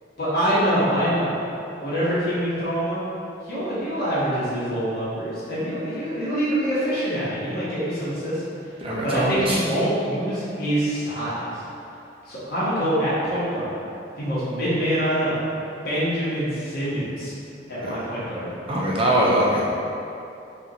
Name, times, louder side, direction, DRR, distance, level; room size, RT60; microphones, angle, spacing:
voice 1, 0.2-1.3 1.8-3.1 3.4-8.4 9.0-11.6 12.2-13.7 14.2-15.4 15.8-17.3 17.7-18.5, equal, 50° left, -10 dB, 1.3 m, -25 dB
voice 2, 8.8-9.6 17.8-18.0 18.7-19.7, right 1 dB, 30° right, -5 dB, 0.5 m, -22 dB
5.6 x 2.5 x 3.0 m, 2.8 s
head